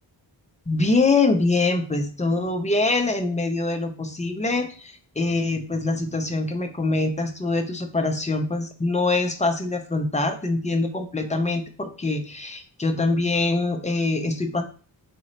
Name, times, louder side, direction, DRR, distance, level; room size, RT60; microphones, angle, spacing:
voice 1, 0.7-14.6, left 3 dB, 15° left, 5 dB, 0.5 m, -24 dB
4.2 x 3.8 x 3.1 m, 0.39 s
wide cardioid pair, 115°, 46 cm